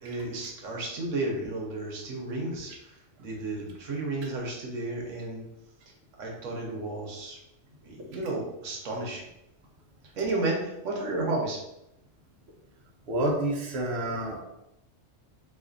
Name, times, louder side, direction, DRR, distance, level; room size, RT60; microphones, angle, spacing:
voice 1, 0.0-5.4 6.2-7.4 7.8-9.2 10.2-11.6, right 2 dB, 80° right, -1 dB, 1.1 m, -32 dB
voice 2, 13.1-14.4, right 1 dB, 60° right, -1 dB, 0.9 m, -28 dB
4.0 x 2.5 x 2.5 m, 0.84 s
omnidirectional pair, 1.3 m